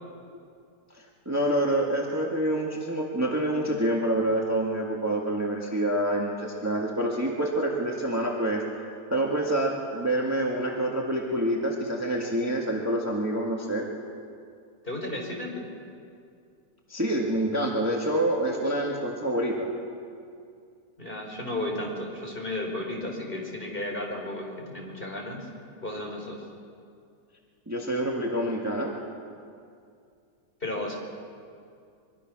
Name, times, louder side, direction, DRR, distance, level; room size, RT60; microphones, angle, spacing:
voice 1, 0.9-8.6 9.1-13.9 16.9-19.7 27.7-28.9, right 1 dB, 10° right, -1 dB, 1.9 m, -27 dB
voice 2, 14.8-15.7 21.0-25.5 25.8-26.4 30.6-31.0, left 1 dB, 30° left, 0 dB, 4.3 m, -33 dB
23.5 x 23.5 x 6.2 m, 2.4 s
omnidirectional pair, 1.8 m